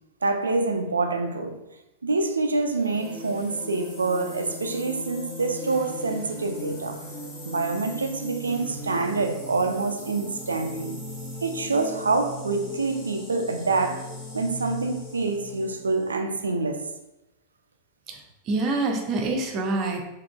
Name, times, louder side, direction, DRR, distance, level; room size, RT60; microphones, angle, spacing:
voice 1, 0.2-1.6 2.0-7.1 7.4-11.0 11.4-14.1 14.3-16.9, right 3 dB, 75° right, 0.3 m, -26 dB
sound 1, 2.7-16.1, left 1 dB, 50° left, 1.4 m, -38 dB
voice 2, 18.1-20.0, right 3 dB, 35° right, 0.6 m, -26 dB
3.6 x 2.8 x 2.3 m
figure-of-eight pair, 90°, 0 cm